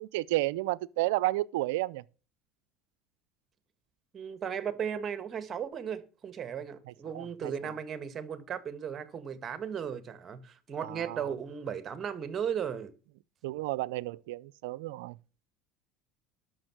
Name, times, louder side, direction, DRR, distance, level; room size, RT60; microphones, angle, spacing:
voice 1, 0.0-2.0 7.1-7.3 10.8-11.2 13.4-15.1, right 18 dB, 80° right, 0.5 m, -31 dB
voice 2, 4.1-12.9, right 8 dB, 40° right, 1.6 m, -36 dB
12.0 x 6.5 x 6.1 m
supercardioid pair, 90°, 0 cm